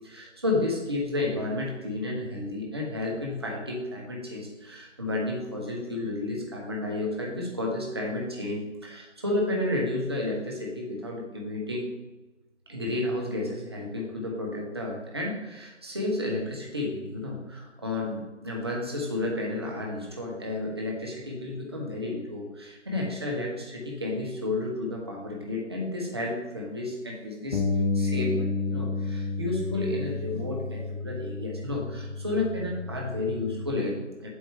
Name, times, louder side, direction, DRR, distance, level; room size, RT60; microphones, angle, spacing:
voice 1, 0.0-11.9 12.7-27.6 27.9-34.3, left 2 dB, 20° right, -2 dB, 0.9 m, -31 dB
Bass guitar, 27.5-33.8, left 4 dB, 50° left, 0.9 m, -31 dB
8.0 x 5.9 x 3.3 m, 1.1 s
figure-of-eight pair, 155°, 36 cm